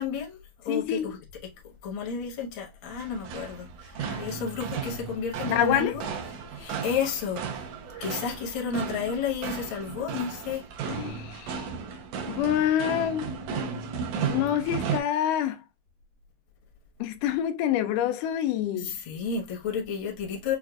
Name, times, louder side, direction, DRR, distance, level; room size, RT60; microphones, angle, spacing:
voice 1, 0.0-1.5 1.8-6.0 6.5-7.7 8.0-10.6 18.8-20.6, left 6 dB, 55° left, 1.3 m, -32 dB
voice 2, 0.7-1.1 4.0-4.2 5.5-5.9 10.9-11.7 12.3-13.3 14.3-15.6 17.0-18.9, left 10 dB, 85° left, 2.1 m, -27 dB
sound 1, 2.8-15.0, right 6 dB, 75° right, 2.1 m, -35 dB
6.3 x 2.4 x 2.3 m
omnidirectional pair, 3.7 m